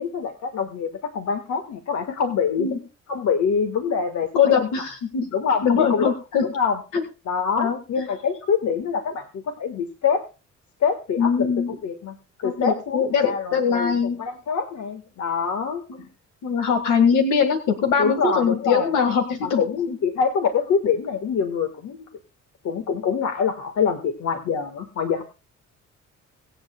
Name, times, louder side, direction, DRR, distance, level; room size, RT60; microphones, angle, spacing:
voice 1, 0.0-2.7 3.1-4.7 5.3-6.1 6.4-6.8 7.3-10.2 10.8-11.5 11.8-12.2 12.4-13.9 14.2-15.8 18.0-18.9 19.4-22.1 22.6-25.2, left 6 dB, 65° left, 7 dB, 1.6 m, -25 dB
voice 2, 4.3-5.3 5.6-6.4 6.9-7.0 7.6-8.0 11.2-11.8 12.4-14.2 15.9-16.0 16.4-19.6 19.9-20.0, left 6 dB, 85° left, 5 dB, 1.8 m, -22 dB
24.0 x 8.1 x 2.2 m, 0.30 s
cardioid pair, 90°, 30 cm